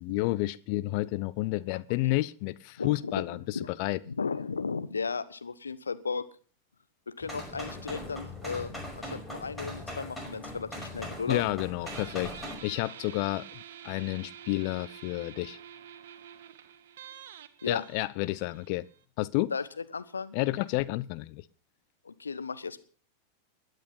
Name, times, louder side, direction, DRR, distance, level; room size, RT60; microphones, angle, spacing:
voice 1, 0.0-4.0 11.3-13.4 13.8-15.6 17.7-18.8 19.2-19.5 20.3-21.4, left 18 dB, 45° left, 0.8 m, -30 dB
voice 2, 2.8-3.2 3.5-3.7 4.1-6.2 7.1-8.7 9.0-11.4 17.6-17.8 19.5-19.6 19.9-20.3 22.0-22.8, left 5 dB, 75° left, 1.2 m, -35 dB
sound 1, 7.2-12.6, left 1 dB, 5° left, 5.4 m, -40 dB
Guitar, 11.9-19.0, right 9 dB, 55° right, 1.3 m, -48 dB
21.0 x 9.4 x 5.6 m
figure-of-eight pair, 90°, 0 cm